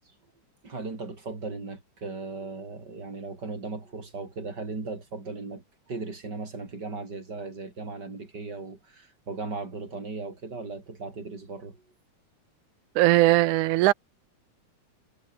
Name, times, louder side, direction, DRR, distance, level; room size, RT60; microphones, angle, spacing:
voice 1, 0.6-11.8, right 3 dB, 30° right, 4.8 m, -37 dB
voice 2, 13.0-13.9, right 18 dB, 85° right, 2.2 m, -19 dB
omnidirectional pair, 3.5 m